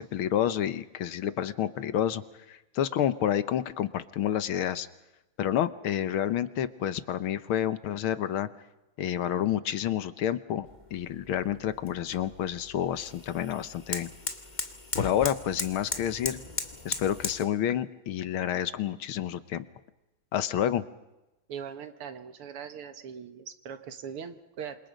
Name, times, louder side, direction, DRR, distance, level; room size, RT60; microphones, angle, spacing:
voice 1, 0.0-4.9 5.4-8.5 9.0-14.1 15.0-16.4 16.9-19.7 20.3-20.8, left 10 dB, 75° left, 13 dB, 1.8 m, -29 dB
sound 1, 10.7-17.4, left 3 dB, 20° left, 1.7 m, -37 dB
voice 2, 21.5-24.8, right 7 dB, 85° right, 9 dB, 2.4 m, -40 dB
28.0 x 26.0 x 5.2 m, 0.97 s
omnidirectional pair, 2.4 m